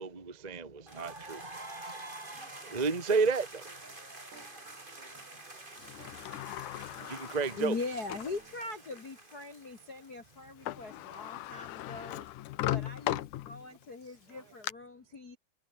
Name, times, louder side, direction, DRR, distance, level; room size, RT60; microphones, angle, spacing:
voice 1, 0.0-1.5 2.6-3.6 7.1-7.8, right 4 dB, 60° right, 0.4 m, -31 dB
sound 1, 0.9-10.6, right 2 dB, 10° right, 3.6 m, -48 dB
voice 2, 2.0-3.1 4.5-7.4 8.5-9.0 9.8-9.9 11.1-11.2 11.5-11.6 11.9-12.3 13.5-13.8 14.3-14.5, right 7 dB, 80° right, 6.4 m, -63 dB
sound 2, 3.6-5.4 6.0-8.6, right 4 dB, 45° right, 8.1 m, -60 dB
Sliding door, 5.8-8.4 9.0-9.1 10.4-10.5 10.7-13.8 14.3-14.7, left 14 dB, 80° left, 1.8 m, -38 dB
voice 3, 7.6-12.2 12.7-15.4, left 3 dB, 45° left, 1.2 m, -41 dB
omnidirectional pair, 5.0 m